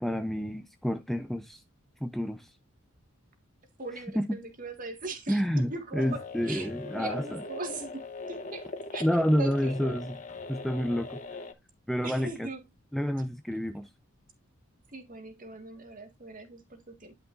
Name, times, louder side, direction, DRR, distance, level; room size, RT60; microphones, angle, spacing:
voice 1, 0.0-1.6 2.0-2.5 4.2-4.4 5.3-7.2 9.0-10.1 10.5-11.2 11.9-12.5 12.9-13.9, equal, ahead, 0.5 m, -29 dB
voice 2, 3.8-9.1 9.4-10.1 12.0-12.6 14.9-17.1, right 3 dB, 40° right, 1.7 m, -40 dB
sound 1, 6.0-11.5, left 3 dB, 35° left, 1.0 m, -41 dB
11.0 x 6.0 x 2.5 m
head